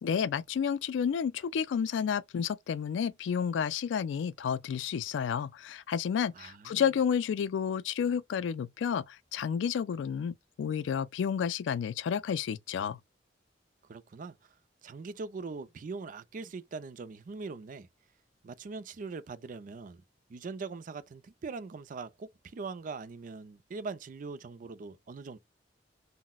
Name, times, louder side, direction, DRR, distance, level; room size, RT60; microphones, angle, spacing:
voice 1, 0.0-13.0, left 7 dB, 85° left, 0.3 m, -31 dB
voice 2, 6.3-6.9 13.9-14.4 14.8-17.9 18.4-20.0 20.3-25.4, right 4 dB, 45° right, 0.4 m, -41 dB
3.8 x 2.1 x 2.2 m
head